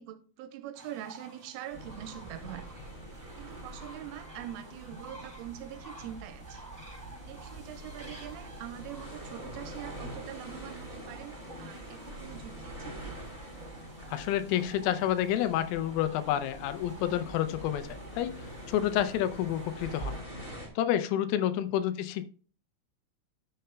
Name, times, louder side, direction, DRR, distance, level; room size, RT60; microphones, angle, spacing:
voice 1, 0.0-2.9 3.4-6.7 7.3-13.2 22.0-22.1, right 11 dB, 85° right, 3.1 m, -44 dB
sound 1, 0.7-20.2, right 2 dB, 5° right, 2.8 m, -52 dB
sound 2, 1.7-20.7, right 1 dB, 15° left, 1.4 m, -44 dB
voice 2, 14.1-18.4 18.7-20.2 20.8-22.3, left 11 dB, 85° left, 3.2 m, -29 dB
14.0 x 6.7 x 2.3 m
omnidirectional pair, 6.0 m